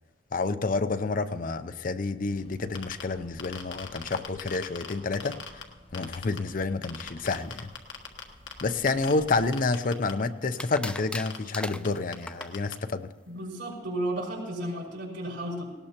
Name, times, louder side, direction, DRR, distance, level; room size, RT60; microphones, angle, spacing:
voice 1, 0.3-5.6 5.9-7.7 8.6-13.1, left 3 dB, 45° left, 11 dB, 0.6 m, -29 dB
sound 1, 2.3-9.6, equal, 30° left, 5.4 m, -54 dB
sound 2, 2.6-3.0 3.4-5.6 5.9-6.4 6.8-8.6 8.9-10.1 10.9-11.0 11.3-11.4 11.8-11.9 12.1-12.2 12.4-12.7, left 7 dB, 70° left, 1.5 m, -38 dB
sound 3, 9.1-9.9 10.6-12.6, left 1 dB, 5° left, 0.3 m, -39 dB
voice 2, 13.3-15.7, right 1 dB, 90° right, -3 dB, 5.5 m, -33 dB
19.0 x 18.0 x 2.9 m, 1.3 s
head